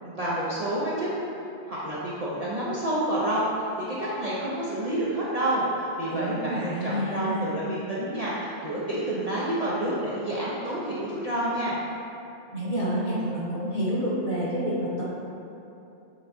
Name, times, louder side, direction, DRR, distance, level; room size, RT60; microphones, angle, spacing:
voice 1, 0.0-1.1 1.6-11.8, right 1 dB, 45° right, -9 dB, 0.5 m, -29 dB
voice 2, 6.1-7.5 12.5-15.0, equal, 50° left, -8 dB, 1.3 m, -28 dB
6.1 x 3.3 x 2.6 m, 2.8 s
omnidirectional pair, 1.2 m